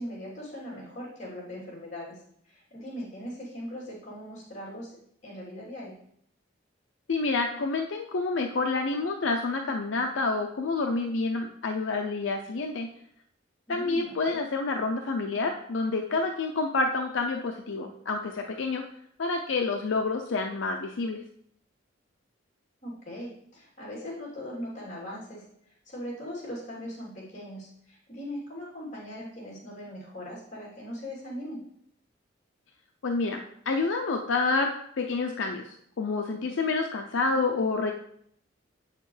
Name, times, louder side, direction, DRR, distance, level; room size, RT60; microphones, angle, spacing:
voice 1, 0.0-2.2 2.4-6.0 13.7-14.4 22.8-31.6, equal, 40° left, -6 dB, 3.2 m, -40 dB
voice 2, 7.1-12.9 13.7-18.8 19.2-21.2 33.0-33.4 33.7-34.7 35.0-37.9, left 3 dB, 75° left, 3 dB, 0.5 m, -28 dB
7.7 x 6.6 x 3.2 m, 0.69 s
head